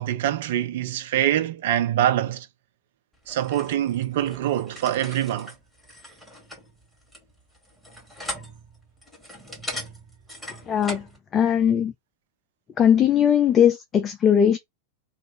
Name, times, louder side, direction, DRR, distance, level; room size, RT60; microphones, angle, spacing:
voice 1, 0.0-2.5 3.3-5.5, right 12 dB, 55° right, 0.6 m, -24 dB
sound 1, 3.2-11.2, equal, ahead, 2.0 m, -40 dB
voice 2, 10.7-11.0 11.3-11.9 12.8-14.6, left 9 dB, 25° left, 0.5 m, -19 dB
3.1 x 2.5 x 4.3 m
figure-of-eight pair, 90°, 0 cm